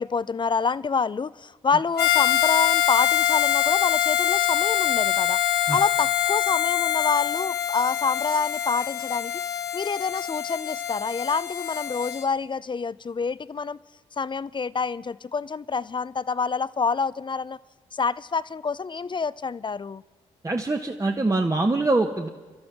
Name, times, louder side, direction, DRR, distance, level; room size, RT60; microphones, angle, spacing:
voice 1, 0.0-9.4 9.7-13.8 14.2-17.6 17.9-20.0, left 5 dB, 30° left, 19 dB, 0.4 m, -27 dB
Harmonica, 2.0-12.3, left 11 dB, 75° left, 0.9 m, -24 dB
voice 2, 20.4-22.3, right 2 dB, 20° right, 4 dB, 1.0 m, -23 dB
26.0 x 12.5 x 3.6 m, 1.3 s
hypercardioid pair, 45°, 17 cm